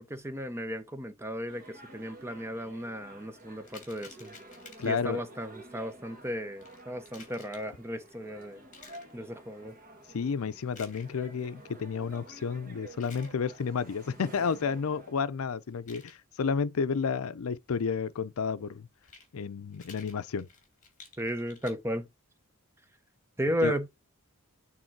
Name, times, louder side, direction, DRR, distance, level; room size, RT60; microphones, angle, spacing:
voice 1, 0.0-4.3 4.8-8.6 9.1-9.7 21.2-22.1 23.4-23.9, equal, 10° right, 0.7 m, -34 dB
sound 1, 1.5-15.1, right 1 dB, 40° right, 1.9 m, -51 dB
sound 2, 3.6-5.1 6.6-7.7 8.7-9.1 10.7-11.1 12.9-13.3 15.7-16.1 18.9-19.3 19.7-21.7, left 5 dB, 35° left, 2.4 m, -52 dB
voice 2, 4.8-5.2 10.1-18.9 19.3-20.5 23.6-23.7, left 5 dB, 70° left, 0.5 m, -31 dB
8.8 x 3.6 x 4.5 m
head